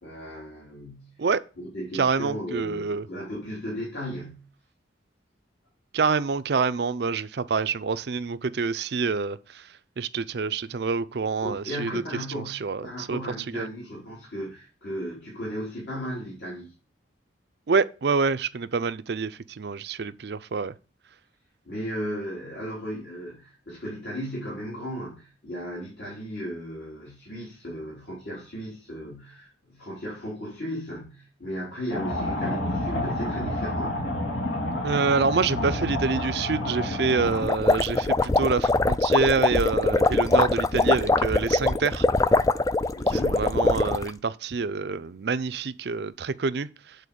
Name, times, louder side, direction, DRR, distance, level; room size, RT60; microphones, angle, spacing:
voice 1, 0.0-1.2 1.6-4.5 11.4-16.7 21.6-34.1 42.9-43.5, equal, 65° left, 3.3 m, -36 dB
voice 2, 1.9-3.1 5.9-9.7 10.0-12.0 12.3-13.2 13.5-13.7 17.7-20.7 34.8-42.1 43.2-47.0, right 4 dB, 60° right, 0.5 m, -27 dB
sound 1, 31.9-37.4, left 1 dB, 85° left, 2.2 m, -29 dB
sound 2, 37.3-44.1, left 2 dB, 20° left, 0.3 m, -22 dB
8.5 x 4.0 x 6.8 m
head